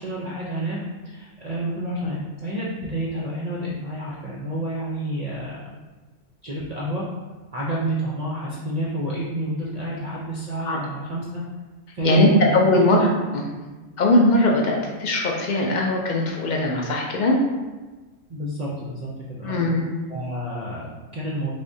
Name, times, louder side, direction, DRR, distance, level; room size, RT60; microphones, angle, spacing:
voice 1, 0.0-5.6 6.4-7.0 7.5-11.4 11.9-12.5 12.8-13.0 18.3-19.6 20.1-21.5, right 1 dB, 50° right, -6 dB, 0.4 m, -29 dB
voice 2, 12.0-13.1 13.3-13.4 14.0-17.4 19.4-19.8, left 1 dB, 65° left, -1 dB, 0.4 m, -20 dB
3.6 x 3.4 x 2.6 m, 1.2 s
omnidirectional pair, 1.3 m